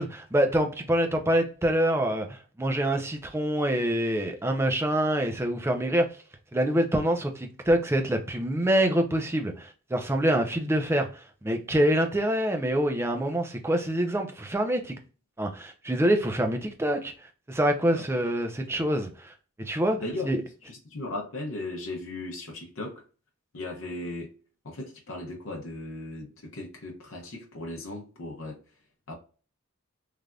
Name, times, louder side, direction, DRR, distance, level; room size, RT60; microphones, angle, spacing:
voice 1, 0.0-6.1 6.5-14.9 15.4-17.1 17.5-20.0 20.3-20.4, right 1 dB, 10° right, 0.4 m, -26 dB
voice 2, 20.0-23.0 23.5-24.3 24.6-28.6 29.1-29.2, left 2 dB, 65° left, 0.7 m, -37 dB
3.3 x 2.5 x 2.2 m
head